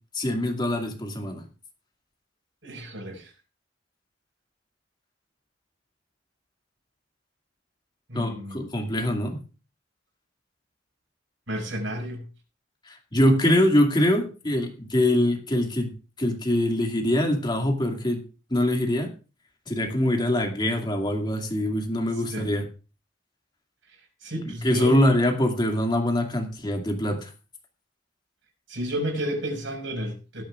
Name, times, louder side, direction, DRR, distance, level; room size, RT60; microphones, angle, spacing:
voice 1, 0.1-1.4 8.1-9.4 12.9-18.2 18.5-19.1 19.7-22.7 24.6-27.3, left 1 dB, 25° left, 2.3 m, -24 dB
voice 2, 2.6-3.3 8.1-8.7 11.5-12.2 22.3-22.5 24.2-25.0 28.7-30.4, equal, 85° right, 5.8 m, -32 dB
17.5 x 13.5 x 2.5 m
head